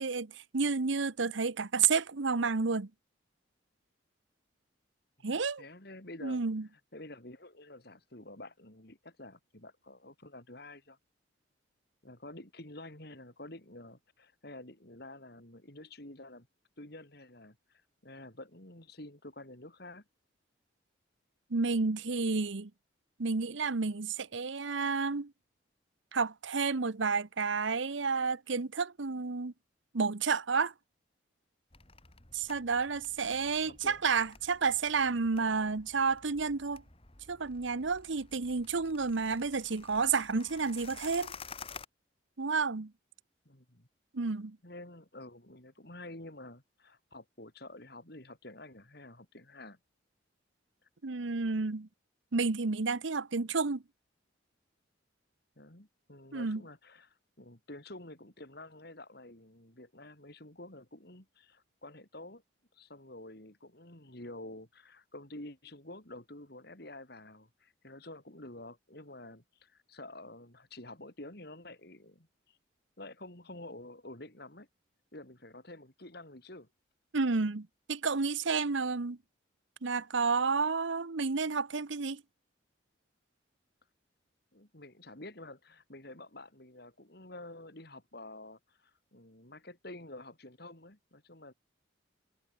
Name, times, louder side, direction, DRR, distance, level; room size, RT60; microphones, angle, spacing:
voice 1, 0.0-2.9 5.2-5.6 6.2-6.7 21.5-22.7 23.2-25.3 26.1-29.5 29.9-30.7 32.3-36.8 37.3-41.3 42.4-42.9 44.1-44.6 51.0-51.9 52.3-53.8 56.3-56.6 77.1-79.2 79.8-82.2, right 4 dB, 75° right, 0.9 m, -31 dB
voice 2, 5.6-6.4 6.9-11.0 12.0-16.5 16.8-20.0 33.2-34.0 43.5-43.9 44.6-49.8 55.6-62.4 62.7-72.6 73.0-74.7 75.1-76.7 84.5-91.5, left 2 dB, 55° left, 3.8 m, -49 dB
sound 1, 31.7-41.9, left 5 dB, 30° left, 2.6 m, -52 dB
head